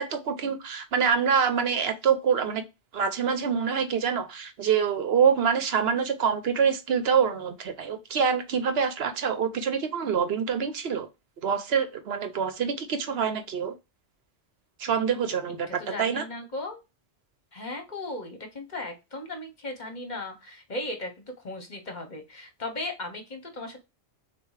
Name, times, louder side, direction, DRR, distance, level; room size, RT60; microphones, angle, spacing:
voice 1, 0.0-2.6 2.9-11.1 11.4-13.7 14.8-16.3, right 7 dB, 70° right, 0.9 m, -26 dB
voice 2, 15.5-16.8 17.5-23.8, left 2 dB, 45° left, 1.1 m, -37 dB
6.7 x 2.4 x 3.2 m
omnidirectional pair, 1.1 m